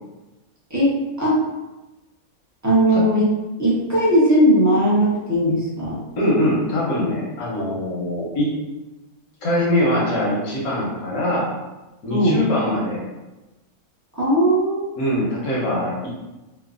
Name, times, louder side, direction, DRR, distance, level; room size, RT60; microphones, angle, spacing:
voice 1, 0.7-1.5 2.6-6.0 12.1-12.5 14.1-14.9, equal, 30° right, -8 dB, 0.3 m, -18 dB
voice 2, 6.2-8.5 9.4-11.5 12.0-13.0 15.0-16.1, left 1 dB, 80° left, -6 dB, 1.3 m, -22 dB
3.1 x 2.0 x 2.4 m, 1.1 s
omnidirectional pair, 1.5 m